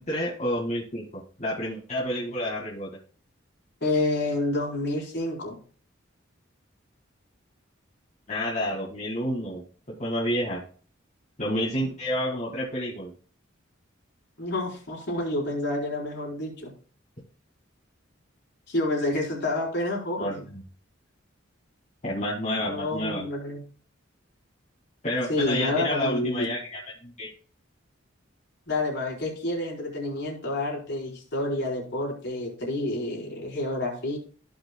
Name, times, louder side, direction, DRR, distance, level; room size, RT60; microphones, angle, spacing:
voice 1, 0.1-2.9 8.3-9.6 10.0-10.6 11.4-13.1 20.2-20.3 22.0-23.2 25.0-27.3, equal, 35° left, -3 dB, 1.9 m, -29 dB
voice 2, 3.8-5.6 14.4-16.7 18.7-20.5 22.7-23.6 25.3-26.5 28.7-34.2, left 2 dB, 55° left, -2 dB, 4.3 m, -29 dB
16.5 x 5.8 x 2.2 m, 0.41 s
head